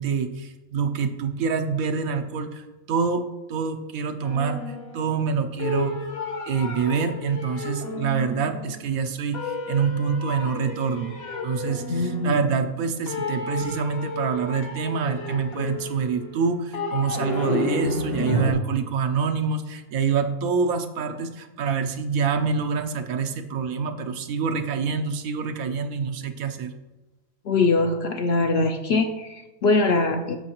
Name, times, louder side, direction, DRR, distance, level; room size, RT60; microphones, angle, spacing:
voice 1, 0.0-3.2 3.5-4.6 4.9-6.0 6.5-11.2 11.4-26.7, right 5 dB, 80° right, 7 dB, 1.1 m, -26 dB
sound 1, 4.2-5.3 5.6-8.9 9.3-12.8 13.1-18.5, left 2 dB, 75° left, 1.8 m, -31 dB
voice 2, 11.9-12.5 27.4-30.4, left 3 dB, 60° left, 5 dB, 0.7 m, -22 dB
13.5 x 5.5 x 3.0 m, 1.1 s
omnidirectional pair, 1.5 m